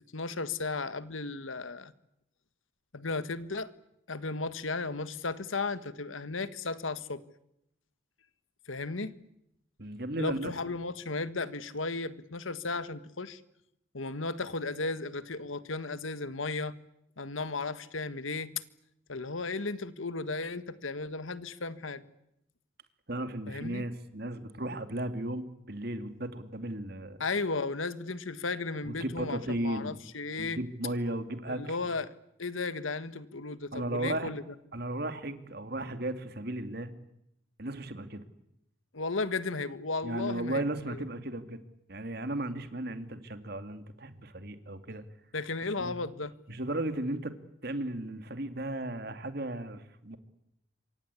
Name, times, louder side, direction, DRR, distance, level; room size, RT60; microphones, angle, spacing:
voice 1, 0.1-1.9 2.9-3.7 4.1-7.2 8.7-9.1 10.2-13.4 13.9-16.7 17.2-18.5 19.1-22.1 23.5-23.9 27.2-30.6 31.5-32.1 32.4-34.4 38.9-40.6 40.9-41.0 45.3-46.3, left 3 dB, 85° left, 1.6 m, -35 dB
voice 2, 9.8-10.5 23.1-27.2 28.8-30.0 30.4-31.8 33.7-34.3 34.7-36.9 37.6-38.2 40.0-41.6 41.9-45.0 45.8-46.0 46.5-47.3 47.6-50.2, right 1 dB, 50° right, 2.6 m, -35 dB
27.5 x 24.5 x 8.4 m
head